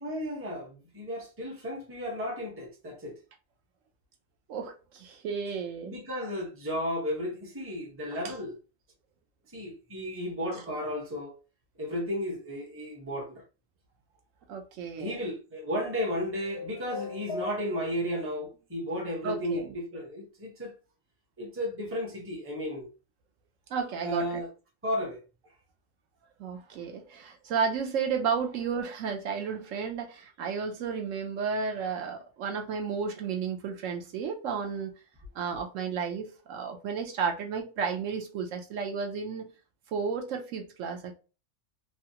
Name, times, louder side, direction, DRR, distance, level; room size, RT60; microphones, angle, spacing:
voice 1, 0.0-3.2 5.8-8.6 9.5-11.4 11.8-13.4 15.0-20.7 21.4-22.9 24.0-24.5 24.8-25.2, equal, 10° right, 0.7 m, -34 dB
voice 2, 4.5-6.0 8.2-8.3 14.5-15.2 19.2-19.7 23.7-24.3 26.4-34.9 35.3-39.5 39.9-41.2, right 6 dB, 70° right, 0.9 m, -32 dB
sound 1, 16.1-18.2, left 3 dB, 65° left, 0.6 m, -39 dB
3.1 x 2.3 x 2.8 m
omnidirectional pair, 1.4 m